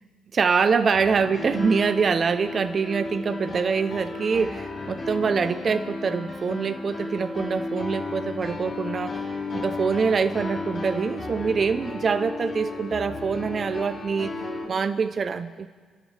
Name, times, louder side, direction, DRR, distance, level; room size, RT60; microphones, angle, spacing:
voice 1, 0.3-9.3 9.5-14.3 14.7-15.7, right 5 dB, 45° right, 9 dB, 0.6 m, -25 dB
Piano, 0.9-14.6, left 3 dB, 50° left, 3.4 m, -34 dB
27.5 x 13.0 x 3.3 m, 1.6 s
cardioid pair, 90°, 0 cm